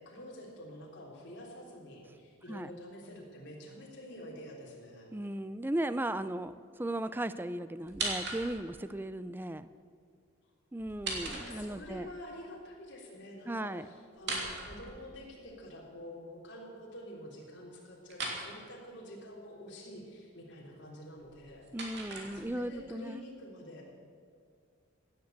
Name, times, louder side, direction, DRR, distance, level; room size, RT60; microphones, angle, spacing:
voice 1, 0.0-5.1 11.1-21.7 22.3-23.9, equal, 55° left, -3 dB, 3.9 m, -48 dB
voice 2, 5.1-9.7 10.7-12.1 13.5-13.9 21.7-23.3, right 1 dB, 10° right, 13 dB, 0.4 m, -36 dB
sound 1, 7.8-8.8 10.8-12.0 14.1-15.5 18.1-18.4 21.2-22.8, right 3 dB, 55° right, 2.9 m, -39 dB
16.5 x 9.7 x 8.2 m, 2.1 s
head